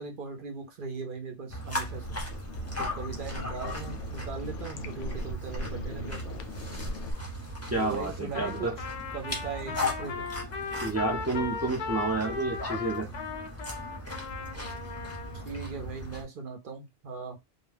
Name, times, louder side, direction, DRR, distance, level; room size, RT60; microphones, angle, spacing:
voice 1, 0.0-2.1 2.8-6.4 7.8-8.8 9.1-10.3 15.4-17.4, right 4 dB, 55° right, 0.7 m, -39 dB
sound 1, 1.5-16.2, left 1 dB, 15° left, 0.7 m, -38 dB
sound 2, 2.0-7.1, left 1 dB, 85° left, 0.9 m, -39 dB
voice 2, 7.7-8.8 10.8-13.1, right 2 dB, 25° right, 0.3 m, -30 dB
Trumpet, 8.3-15.5, left 5 dB, 50° left, 0.5 m, -37 dB
2.3 x 2.2 x 3.3 m
omnidirectional pair, 1.2 m